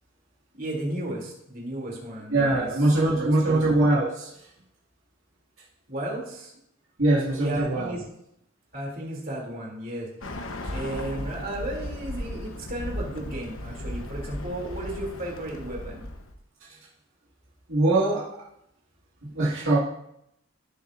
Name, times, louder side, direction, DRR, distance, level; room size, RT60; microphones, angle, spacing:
voice 1, 0.5-2.7 3.1-3.6 5.9-6.5 7.4-8.0 8.7-10.1 10.7-16.1, right 1 dB, 45° right, -2 dB, 2.9 m, -34 dB
voice 2, 2.3-4.3 7.0-8.0 17.7-18.4 19.3-19.8, right 2 dB, 80° right, -6 dB, 2.0 m, -22 dB
Bird, 10.2-16.3, left 1 dB, 85° left, 1.1 m, -36 dB
16.0 x 7.1 x 2.6 m, 0.78 s
head